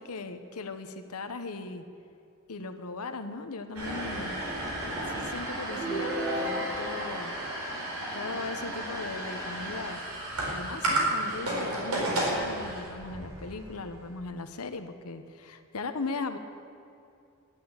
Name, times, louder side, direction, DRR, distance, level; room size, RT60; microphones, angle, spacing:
voice 1, 0.0-1.8 2.5-4.4 5.1-7.3 8.1-10.0 10.5-16.4, left 3 dB, 85° left, 8 dB, 1.0 m, -38 dB
sound 1, 3.7-14.1, right 1 dB, 85° right, 4.3 m, -33 dB
sound 2, 5.7-7.2, equal, 5° right, 3.9 m, -32 dB
12.0 x 10.5 x 8.8 m, 2.6 s
head